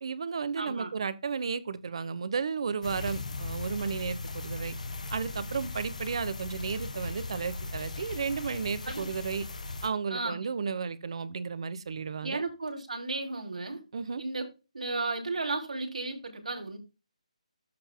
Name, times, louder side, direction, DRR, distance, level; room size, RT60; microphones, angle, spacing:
voice 1, 0.0-4.8 5.1-9.4 9.8-12.4 13.9-14.2, right 5 dB, 50° right, 1.0 m, -33 dB
voice 2, 0.6-0.9 8.8-9.1 10.1-10.4 12.2-13.8 14.2-14.4 14.7-16.8, right 3 dB, 85° right, 2.7 m, -34 dB
sound 1, 2.8-9.9, left 3 dB, 80° left, 1.7 m, -38 dB
13.5 x 5.3 x 2.2 m
hypercardioid pair, 170°, 4 cm